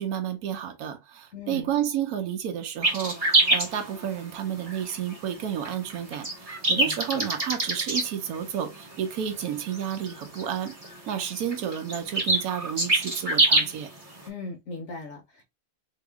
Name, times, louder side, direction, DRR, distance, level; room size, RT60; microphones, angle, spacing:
voice 1, 0.0-10.7 11.1-13.9, right 9 dB, 75° right, 0.8 m, -31 dB
voice 2, 1.3-1.7 6.7-7.3 14.3-15.4, left 3 dB, 60° left, 0.8 m, -38 dB
sound 1, 2.8-14.3, right 2 dB, 25° right, 0.9 m, -26 dB
2.9 x 2.8 x 3.3 m
omnidirectional pair, 2.2 m